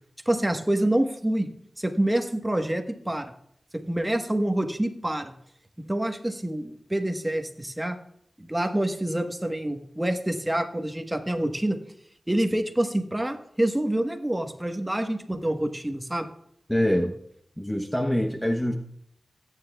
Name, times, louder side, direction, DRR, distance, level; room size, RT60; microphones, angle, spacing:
voice 1, 0.2-1.5 1.8-3.3 3.7-5.3 5.8-8.0 8.4-11.8 12.3-16.3, right 1 dB, 15° right, 5 dB, 1.2 m, -27 dB
voice 2, 16.7-17.2 17.6-18.7, equal, 10° left, 4 dB, 0.8 m, -24 dB
17.0 x 9.2 x 2.3 m, 0.70 s
cardioid pair, 50°, 0 cm